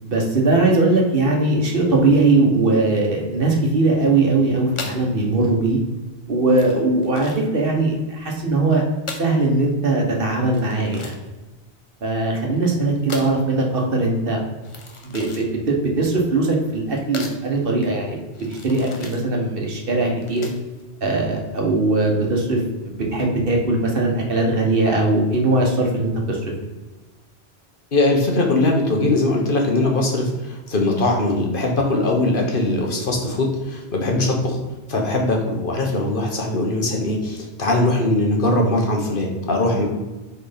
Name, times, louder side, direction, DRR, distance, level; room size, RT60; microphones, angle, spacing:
voice 1, 0.0-5.8 6.3-8.8 9.2-11.1 12.0-14.4 15.0-18.2 18.5-20.5 21.0-26.4, right 2 dB, 55° right, 1 dB, 1.4 m, -20 dB
sound 1, 4.7-20.8, left 3 dB, 35° left, 0.7 m, -39 dB
voice 2, 27.9-34.6 34.9-39.9, left 2 dB, 55° left, 1 dB, 1.2 m, -21 dB
4.7 x 4.5 x 5.0 m, 1.1 s
omnidirectional pair, 1.1 m